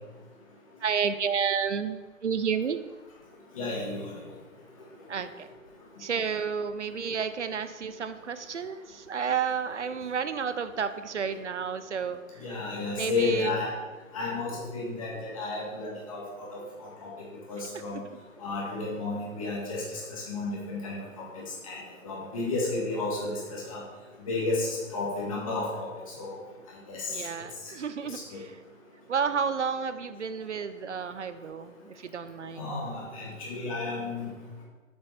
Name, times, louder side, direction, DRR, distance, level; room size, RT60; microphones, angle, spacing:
voice 1, 0.8-2.8 5.1-5.5 6.0-13.5 17.9-18.2 27.1-28.6 29.1-32.7, right 6 dB, 60° right, 11 dB, 0.6 m, -31 dB
voice 2, 3.6-4.0 12.4-13.7 14.1-16.5 17.5-18.0 18.4-19.8 20.1-21.0 21.7-21.8 22.0-23.8 24.3-25.9 26.2-26.4 26.9-27.1 28.1-28.2 32.6-34.3, left 3 dB, 25° left, -3 dB, 1.7 m, -32 dB
7.1 x 6.3 x 4.1 m, 1.2 s
figure-of-eight pair, 155°, 41 cm